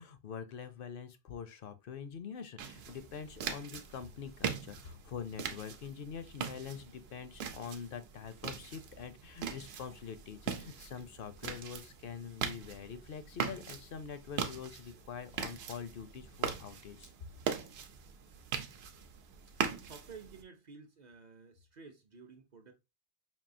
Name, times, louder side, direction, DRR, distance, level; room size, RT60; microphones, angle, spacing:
voice 1, 0.0-17.1, left 7 dB, 65° left, 0.7 m, -45 dB
sound 1, 2.6-20.4, right 7 dB, 85° right, 0.9 m, -41 dB
voice 2, 19.8-22.7, right 5 dB, 50° right, 0.7 m, -52 dB
5.4 x 2.7 x 2.5 m
omnidirectional pair, 1.0 m